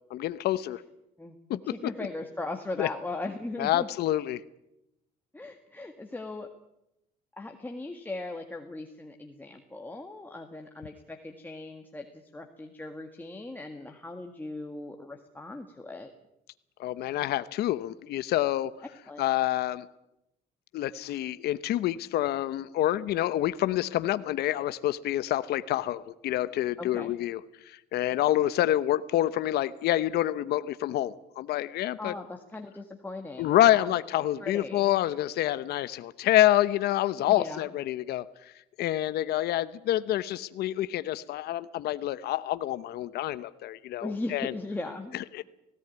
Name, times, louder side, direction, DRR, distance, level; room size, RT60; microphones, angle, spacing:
voice 1, 0.1-0.8 1.5-1.6 2.8-2.9 3.6-4.4 16.8-18.7 19.2-19.9 20.7-27.4 27.7-32.1 33.4-38.3 38.8-44.5 45.3-45.4, left 13 dB, 75° left, 14 dB, 0.9 m, -27 dB
voice 2, 1.2-3.9 5.3-6.5 7.4-16.1 19.1-19.2 26.8-27.1 32.0-34.9 37.2-37.7 44.0-45.2, left 2 dB, 10° left, 3 dB, 1.8 m, -39 dB
18.5 x 17.0 x 9.4 m, 0.84 s
cardioid pair, 110°, 17 cm